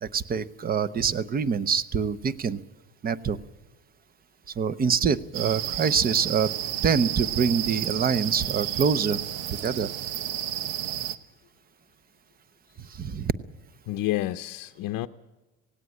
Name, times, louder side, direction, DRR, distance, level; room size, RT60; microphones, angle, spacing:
voice 1, 0.0-2.6 3.0-3.4 4.6-6.5 6.8-9.2 9.6-9.9 12.9-13.3, right 6 dB, 25° right, 17 dB, 0.7 m, -25 dB
sound 1, 5.3-11.2, right 12 dB, 90° right, 1.0 m, -31 dB
voice 2, 13.9-15.1, left 15 dB, 55° left, 5 dB, 0.7 m, -29 dB
18.0 x 17.5 x 9.6 m, 1.1 s
cardioid pair, 150°, 38 cm